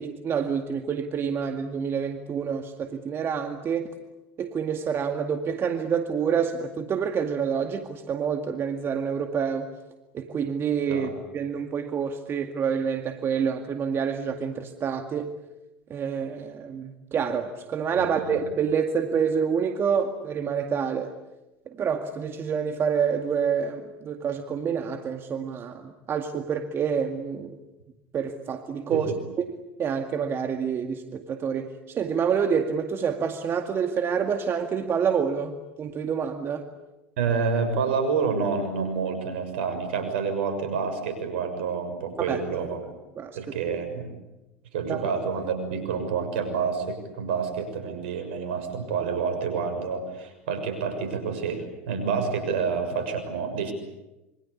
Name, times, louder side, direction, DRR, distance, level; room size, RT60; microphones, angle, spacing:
voice 1, 0.0-3.9 4.4-9.7 10.1-15.3 15.9-21.1 21.7-27.6 28.1-29.1 29.5-36.7 42.3-42.7 43.2-43.6 44.9-45.0, right 7 dB, 40° right, 6 dB, 2.1 m, -28 dB
voice 2, 18.0-18.4 28.9-29.1 37.2-42.8 43.3-44.1 44.7-53.7, right 5 dB, 75° right, 8 dB, 6.6 m, -28 dB
27.0 x 24.5 x 8.5 m, 1.0 s
hypercardioid pair, 85°, 6 cm